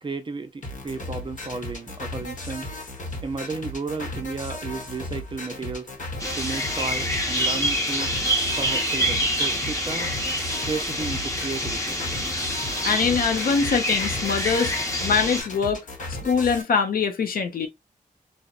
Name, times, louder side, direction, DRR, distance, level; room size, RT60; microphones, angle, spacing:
voice 1, 0.0-2.7 3.2-5.9 6.4-8.2 8.6-10.2 10.6-12.1, right 4 dB, 35° right, 0.5 m, -33 dB
sound 1, 0.6-16.6, left 2 dB, 60° left, 0.9 m, -36 dB
sound 2, 6.2-15.4, equal, 20° left, 0.8 m, -26 dB
voice 2, 12.8-14.7 15.0-17.7, left 5 dB, 85° left, 0.6 m, -23 dB
2.9 x 2.1 x 2.3 m
wide cardioid pair, 100°, 15 cm